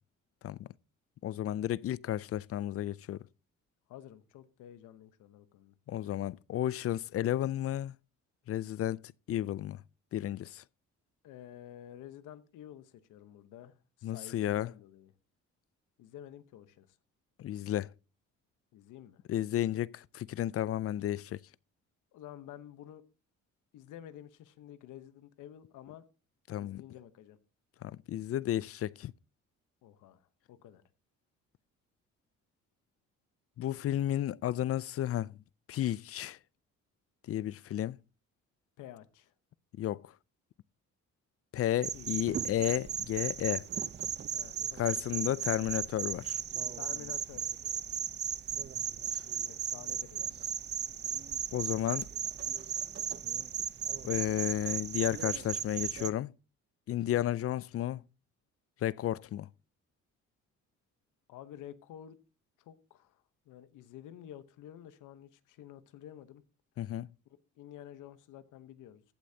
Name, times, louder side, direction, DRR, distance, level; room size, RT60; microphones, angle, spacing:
voice 1, 1.2-3.2 5.9-8.0 8.5-9.0 9.3-9.8 10.1-10.6 14.0-14.7 17.4-17.9 19.3-21.4 26.5-26.8 27.8-29.1 33.6-35.3 35.7-36.4 37.3-38.0 39.8-40.0 41.5-43.7 44.8-46.4 51.5-52.1 54.0-56.3 56.9-58.0 58.8-59.5 66.8-67.1, left 12 dB, 50° left, 0.4 m, -32 dB
voice 2, 3.9-5.7 11.2-15.1 16.0-17.0 18.7-19.2 22.1-23.0 23.7-26.0 26.6-27.4 29.8-30.8 38.8-39.3 41.9-42.1 44.3-44.9 46.7-47.5 49.5-50.4 61.3-62.2 62.6-66.4 67.6-69.0, left 11 dB, 90° left, 1.0 m, -50 dB
sound 1, 41.8-56.1, right 8 dB, 35° right, 0.6 m, -36 dB
15.0 x 8.4 x 2.7 m
cardioid pair, 90°, 30 cm